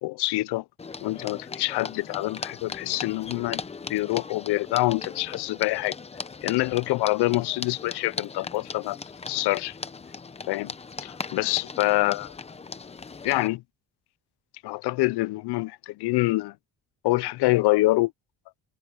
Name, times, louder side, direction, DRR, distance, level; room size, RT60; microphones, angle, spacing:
voice 1, 0.0-0.6 1.0-3.6 3.9-6.0 6.4-9.0 9.3-9.7 10.5-10.7 11.0-12.3 13.2-13.6 14.6-16.5 17.0-18.1, left 20 dB, 80° left, 0.5 m, -25 dB
sound 1, 0.8-13.5, left 4 dB, 15° left, 0.6 m, -39 dB
cardioid pair, 170°, 39 cm